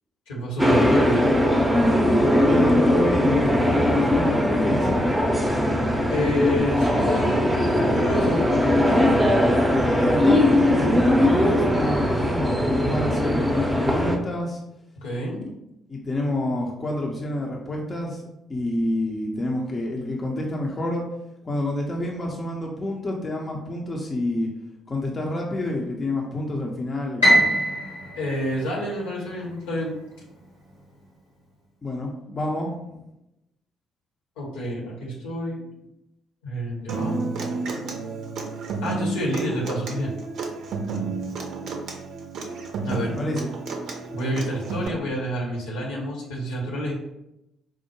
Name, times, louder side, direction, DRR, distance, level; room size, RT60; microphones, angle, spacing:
voice 1, 0.3-1.2 6.1-8.4 15.0-15.4 28.1-29.9 34.4-35.6 36.4-37.3 38.8-40.1 42.8-43.2 44.1-46.9, equal, 70° left, -3 dB, 0.9 m, -28 dB
sound 1, 0.6-14.2, left 1 dB, 10° right, 0.6 m, -20 dB
voice 2, 2.4-4.9 9.7-14.6 15.4-15.5 15.9-21.0 21.4-24.5 24.9-27.5 31.8-32.8 43.1-43.5, left 1 dB, 30° left, -1 dB, 0.6 m, -28 dB
Piano, 27.2-29.5, equal, 85° left, 1.2 m, -22 dB
Human voice / Acoustic guitar, 36.9-44.9, right 3 dB, 55° right, 0.5 m, -31 dB
4.6 x 2.1 x 3.0 m, 0.88 s
figure-of-eight pair, 45°, 0 cm